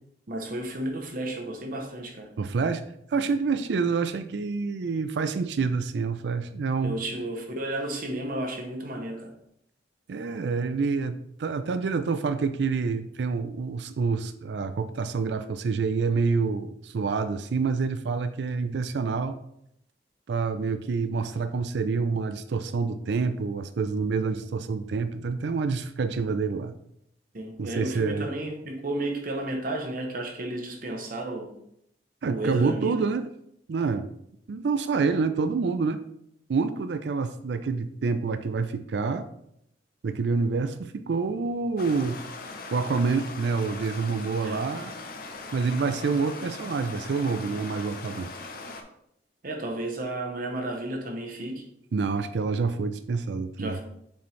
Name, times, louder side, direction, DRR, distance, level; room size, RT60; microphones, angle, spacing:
voice 1, 0.3-2.3 6.8-9.3 24.4-24.5 27.3-31.5 32.3-33.0 44.4-44.6 49.4-51.7 53.6-53.8, right 1 dB, 50° right, 3 dB, 0.8 m, -32 dB
voice 2, 2.4-2.8 3.1-7.0 10.1-11.1 11.4-19.4 20.3-26.7 27.6-28.3 32.2-33.3 33.7-34.1 34.5-36.0 36.5-39.3 40.0-42.2 42.7-44.9 45.5-48.3 51.9-53.8, right 4 dB, 65° right, 10 dB, 0.4 m, -27 dB
Stream, 41.8-48.8, left 3 dB, 50° left, 0.8 m, -40 dB
6.9 x 4.3 x 3.2 m, 0.75 s
head